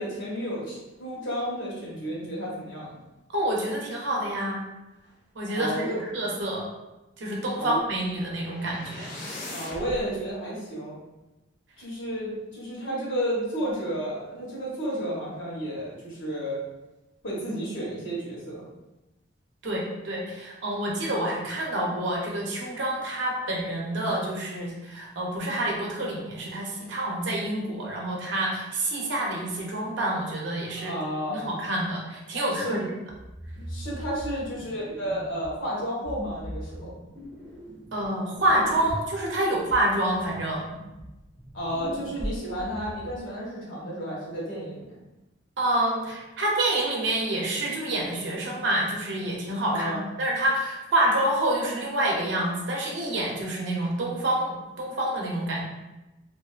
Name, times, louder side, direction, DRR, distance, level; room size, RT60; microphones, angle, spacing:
voice 1, 0.0-2.9 5.5-6.0 7.6-7.8 9.5-11.0 11.8-16.6 17.2-18.7 30.7-31.5 32.6-32.8 33.5-36.9 41.5-45.0 49.7-50.0, equal, 75° left, -6 dB, 1.0 m, -32 dB
voice 2, 3.3-4.6 5.3-5.9 6.1-6.7 7.2-9.1 19.6-30.9 31.3-32.9 37.9-40.6 45.6-55.7, right 1 dB, 65° right, -2 dB, 0.6 m, -27 dB
sound 1, 7.8-10.0, left 1 dB, 45° left, 0.5 m, -40 dB
sound 2, 33.1-35.6 36.0-38.1 38.3-43.2, equal, 10° right, 0.4 m, -39 dB
2.5 x 2.3 x 2.3 m, 1.0 s
head